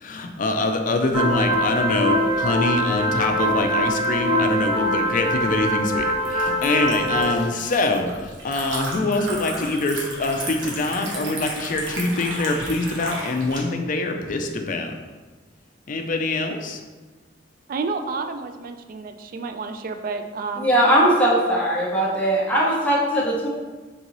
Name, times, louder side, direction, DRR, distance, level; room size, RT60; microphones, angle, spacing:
voice 1, 0.0-14.9 15.9-16.8, left 2 dB, 45° left, 4 dB, 0.4 m, -24 dB
sound 1, 1.1-7.4, equal, 30° right, 1.3 m, -23 dB
Liquid, 5.3-13.6, right 1 dB, 85° right, 1.0 m, -34 dB
voice 2, 17.7-20.7, right 4 dB, 50° right, 7 dB, 0.3 m, -30 dB
voice 3, 20.6-23.5, right 1 dB, 10° left, -5 dB, 0.9 m, -19 dB
4.0 x 3.7 x 3.0 m, 1.3 s
head